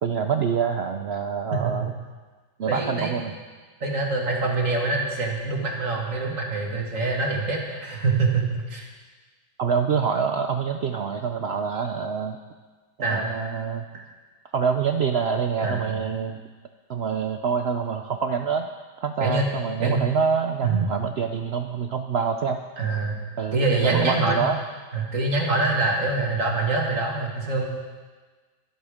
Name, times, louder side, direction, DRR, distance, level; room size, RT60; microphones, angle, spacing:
voice 1, 0.0-1.9 2.6-3.3 9.6-12.4 13.0-13.8 14.5-16.4 16.9-18.7 19.0-22.6 23.4-24.6, right 6 dB, 90° right, 6 dB, 0.5 m, -26 dB
voice 2, 2.7-3.2 3.8-8.9 13.0-13.3 15.6-16.0 19.2-19.5 19.8-20.1 20.6-20.9 22.8-23.1 23.5-24.5 24.9-27.6, right 3 dB, 45° right, -1 dB, 2.5 m, -25 dB
23.0 x 7.9 x 5.0 m, 1.4 s
omnidirectional pair, 1.9 m